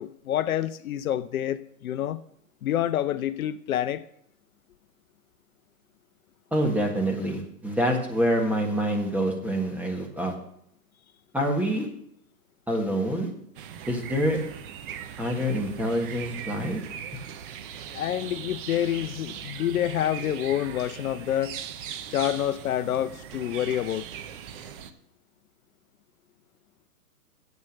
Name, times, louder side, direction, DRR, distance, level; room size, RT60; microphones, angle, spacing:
voice 1, 0.0-2.2 2.6-4.0 17.9-21.5 22.1-24.1, left 11 dB, 65° left, 11 dB, 0.7 m, -27 dB
voice 2, 6.5-10.3 11.3-11.9 12.7-13.3 13.9-14.4 15.2-16.8, equal, 5° right, 1 dB, 1.6 m, -26 dB
sound 1, 13.5-24.9, right 8 dB, 35° right, 0.9 m, -40 dB
9.5 x 8.1 x 6.5 m, 0.72 s
hypercardioid pair, 135°, 48 cm